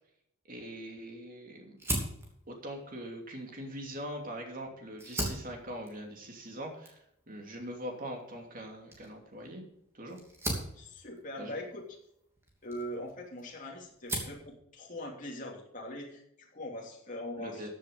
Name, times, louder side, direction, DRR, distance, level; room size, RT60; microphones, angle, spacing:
voice 1, 0.5-1.8 2.5-9.6 9.9-10.2 11.4-11.6 17.4-17.7, equal, 40° right, 2 dB, 2.8 m, -42 dB
Fire, 1.8-4.4 4.9-13.5 13.8-14.5, right 1 dB, 10° right, 2.7 m, -40 dB
voice 2, 10.7-12.0 12.6-17.7, left 1 dB, 40° left, -1 dB, 3.1 m, -42 dB
14.5 x 7.4 x 5.5 m, 0.74 s
head